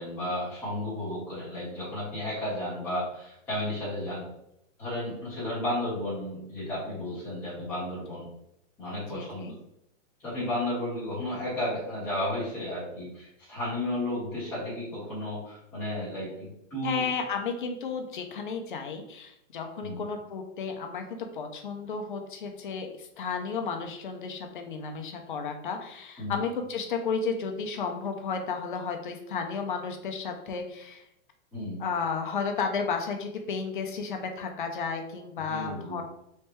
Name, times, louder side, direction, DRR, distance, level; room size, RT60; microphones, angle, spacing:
voice 1, 0.0-4.2 4.8-8.3 8.8-9.5 10.2-17.1 19.8-20.0 26.2-26.4 31.5-31.8 35.5-36.0, left 1 dB, 5° left, -12 dB, 1.2 m, -33 dB
voice 2, 9.1-9.5 16.8-31.0 31.8-36.0, left 5 dB, 45° left, 4 dB, 0.5 m, -33 dB
3.2 x 3.2 x 3.0 m, 0.80 s
hypercardioid pair, 180°, 37 cm